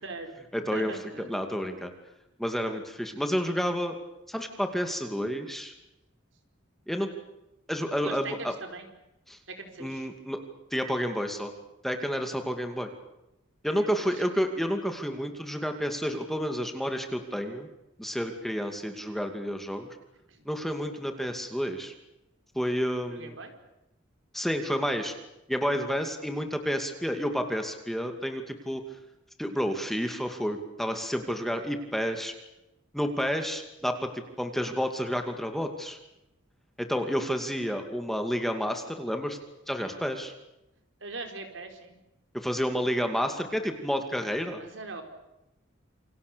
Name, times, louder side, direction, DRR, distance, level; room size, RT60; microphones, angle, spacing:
voice 1, 0.0-0.3 0.7-1.3 8.0-8.9 9.5-10.1 13.7-14.1 20.3-20.4 23.1-23.5 39.7-40.0 41.0-41.9 44.6-45.0, right 3 dB, 70° right, 5 dB, 4.7 m, -41 dB
voice 2, 0.5-0.9 1.2-1.9 2.4-3.9 4.3-5.7 6.9-7.1 7.7-8.5 9.3-9.4 9.8-10.4 10.7-11.5 11.8-12.9 13.6-17.7 18.0-20.0 20.5-21.9 22.6-23.4 24.3-25.1 25.5-28.8 29.4-32.3 32.9-36.0 36.8-39.4 39.7-40.3 42.3-44.6, equal, ahead, 5 dB, 2.5 m, -30 dB
28.0 x 26.0 x 7.0 m, 0.91 s
head